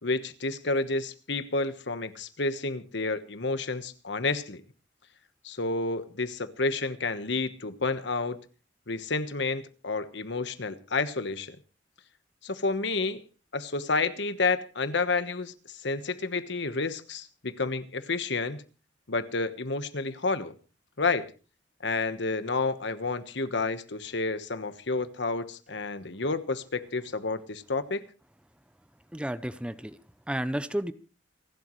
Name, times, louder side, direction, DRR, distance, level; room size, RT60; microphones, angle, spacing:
voice 1, 0.0-4.6 5.4-8.4 8.9-11.6 12.4-13.2 13.5-18.6 19.1-20.5 21.0-21.3 21.8-28.0, left 3 dB, 65° left, 1.3 m, -30 dB
voice 2, 29.1-30.0 30.3-30.9, right 1 dB, 5° right, 0.6 m, -31 dB
28.5 x 11.5 x 3.2 m
head